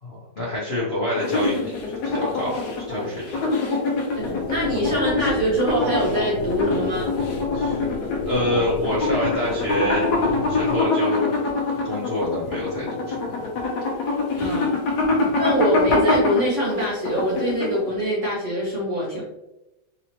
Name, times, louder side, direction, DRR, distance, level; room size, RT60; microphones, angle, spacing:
voice 1, 0.0-3.4 7.5-7.9 8.2-10.0 10.5-11.4 11.8-13.5 15.1-15.4, left 1 dB, 45° left, -8 dB, 0.8 m, -27 dB
sound 1, 1.2-18.0, left 3 dB, 65° left, 1.1 m, -24 dB
voice 2, 4.1-7.1 14.4-14.7 15.4-19.2, equal, 45° right, -7 dB, 1.3 m, -24 dB
sound 2, 4.2-10.8, left 4 dB, 85° left, 1.5 m, -31 dB
3.9 x 2.9 x 2.8 m, 0.96 s
omnidirectional pair, 2.3 m